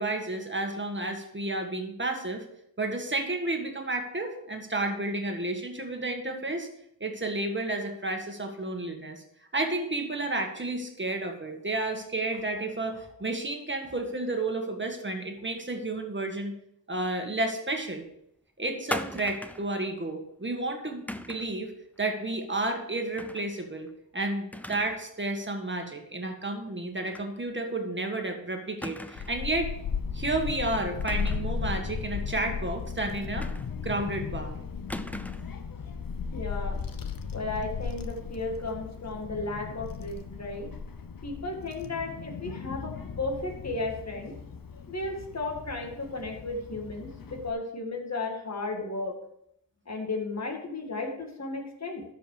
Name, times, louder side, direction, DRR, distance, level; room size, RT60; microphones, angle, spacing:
voice 1, 0.0-2.4 2.8-6.7 7.0-9.2 9.5-16.5 16.9-18.0 18.6-21.7 22.0-23.9 24.1-29.7 30.1-33.5 33.8-34.6, right 2 dB, 30° right, 4 dB, 1.7 m, -31 dB
sound 1, 18.9-19.7 21.1-21.5 23.2-23.5 23.9-24.0 24.5-25.1 25.4-25.5 27.1-27.3 27.7-27.8 28.8-29.4 31.0-31.6 33.4-34.0 34.9-35.6, left 1 dB, 5° left, 0.5 m, -38 dB
Child speech kid speaking / Wind, 29.2-47.5, left 6 dB, 70° left, 0.8 m, -36 dB
voice 2, 36.3-36.8 37.3-40.7 41.2-44.3 44.9-49.1 49.9-52.0, left 2 dB, 50° left, 2 dB, 1.9 m, -34 dB
12.5 x 5.1 x 4.8 m, 0.76 s
wide cardioid pair, 60°, 35 cm